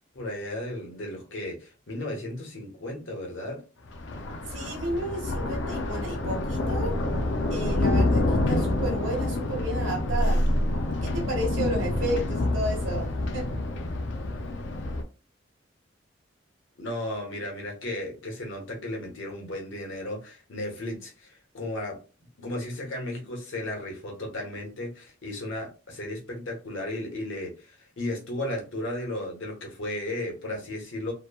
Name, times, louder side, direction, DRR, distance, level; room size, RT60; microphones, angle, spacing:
voice 1, 0.1-3.6 16.8-22.0 22.4-31.1, left 1 dB, 90° left, 0 dB, 1.0 m, -34 dB
Thunder, 3.9-15.0, left 1 dB, 70° left, 0.5 m, -27 dB
voice 2, 4.5-6.9 7.5-10.4 11.0-13.5, right 1 dB, 85° right, 1 dB, 1.1 m, -32 dB
2.9 x 2.1 x 2.2 m, 0.34 s
head